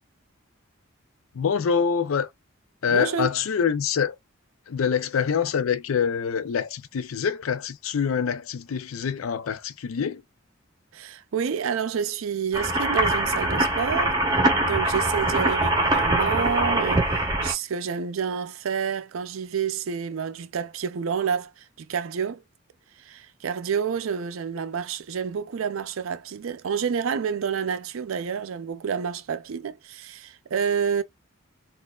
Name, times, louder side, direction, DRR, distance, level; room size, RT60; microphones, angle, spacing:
voice 1, 1.3-2.3 2.8-4.2 4.7-10.2, left 7 dB, 85° left, 0.4 m, -25 dB
voice 2, 2.9-3.3 10.9-14.2 14.6-22.4 23.0-31.0, right 7 dB, 75° right, 0.4 m, -29 dB
sound 1, 12.5-17.5, right 1 dB, 20° right, 0.8 m, -23 dB
4.2 x 2.5 x 2.2 m
head